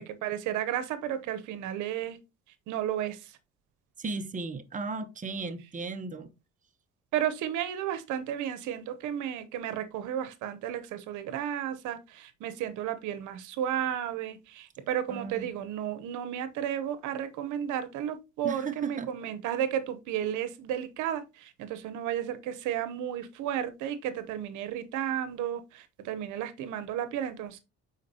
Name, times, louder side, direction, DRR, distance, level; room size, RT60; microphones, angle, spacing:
voice 1, 0.0-2.2 2.7-3.4 7.1-27.6, right 10 dB, 80° right, 0.9 m, -33 dB
voice 2, 4.0-6.3 15.1-15.5 18.4-19.1, right 4 dB, 25° right, 0.9 m, -35 dB
8.3 x 4.6 x 2.8 m
cardioid pair, 85°, 30 cm